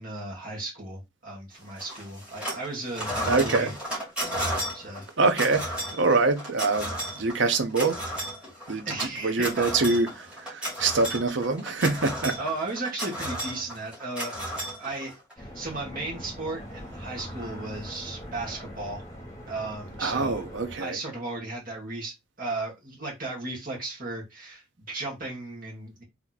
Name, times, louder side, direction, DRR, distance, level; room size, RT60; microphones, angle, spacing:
voice 1, 0.0-3.7 4.7-5.1 8.9-9.7 12.4-14.3 14.8-19.0 19.5-20.4 20.8-26.0, right 2 dB, 45° right, 1.8 m, -35 dB
sound 1, 1.8-2.7 2.9-15.3, equal, 5° right, 2.2 m, -33 dB
voice 2, 3.2-3.8 5.2-8.0 8.7-12.4 20.0-21.0, right 3 dB, 70° right, 0.8 m, -25 dB
sound 2, 15.4-20.8, equal, 15° left, 1.3 m, -41 dB
3.4 x 3.0 x 4.0 m
head